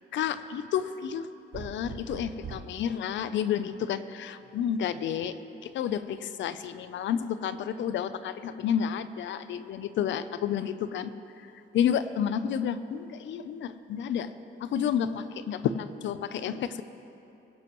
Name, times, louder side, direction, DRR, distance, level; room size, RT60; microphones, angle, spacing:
voice 1, 0.1-1.3 1.5-5.3 5.7-11.1 11.7-14.3 14.6-16.8, left 8 dB, 70° left, 13 dB, 0.5 m, -30 dB
sound 1, 1.5-2.8 4.4-5.0, right 6 dB, 50° right, 0.9 m, -42 dB
22.0 x 10.5 x 3.1 m, 2.8 s
cardioid pair, 90°, 20 cm